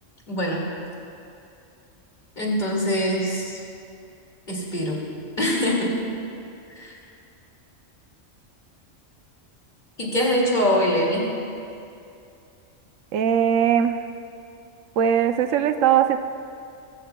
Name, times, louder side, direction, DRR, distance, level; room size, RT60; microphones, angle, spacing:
voice 1, 0.3-0.7 2.4-3.6 4.5-5.0 5.4-6.0 6.7-6.9 10.0-11.3, equal, 35° left, -3 dB, 2.6 m, -23 dB
voice 2, 13.1-14.0 15.0-16.2, right 9 dB, 80° right, 9 dB, 1.0 m, -20 dB
21.0 x 15.5 x 2.3 m, 2.6 s
omnidirectional pair, 1.3 m